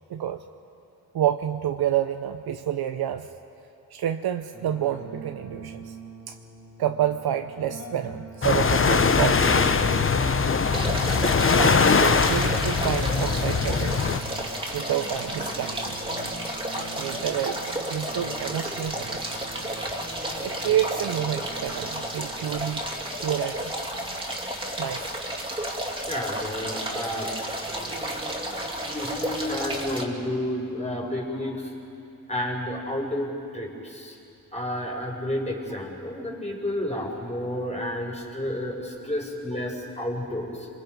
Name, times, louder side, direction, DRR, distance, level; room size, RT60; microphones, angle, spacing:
voice 1, 0.1-0.4 1.1-3.3 3.9-6.0 6.3-6.4 6.8-10.0 11.6-14.0 14.7-15.9 17.0-17.6 17.9-19.4 20.4-22.8 23.2-23.7 24.8-25.1, right 11 dB, 75° right, 7 dB, 0.8 m, -28 dB
sound 1, 4.5-23.5, right 2 dB, 50° left, 4.7 m, -43 dB
sound 2, 8.4-14.2, left 5 dB, 35° left, 1.0 m, -21 dB
sound 3, 10.7-30.0, right 1 dB, 15° right, 2.7 m, -32 dB
voice 2, 26.1-27.3 28.9-31.7 32.3-34.2 34.5-40.7, left 1 dB, 15° left, -1 dB, 4.8 m, -31 dB
28.0 x 22.5 x 5.3 m, 2.7 s
cardioid pair, 90°, 38 cm